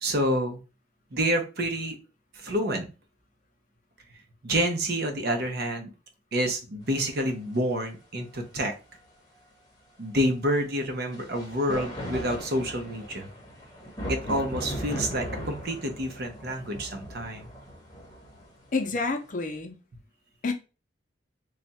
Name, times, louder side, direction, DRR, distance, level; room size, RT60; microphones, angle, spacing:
voice 1, 0.0-0.6 1.1-2.0 2.3-2.9 4.4-5.9 6.3-8.7 10.0-13.3 14.1-17.5, equal, 60° right, 0.8 m, -28 dB
sound 1, 7.3-7.4 11.1-19.5, equal, 20° left, 1.0 m, -38 dB
voice 2, 18.7-19.7 20.4-20.5, left 3 dB, 45° left, 0.6 m, -28 dB
3.3 x 2.4 x 4.1 m
head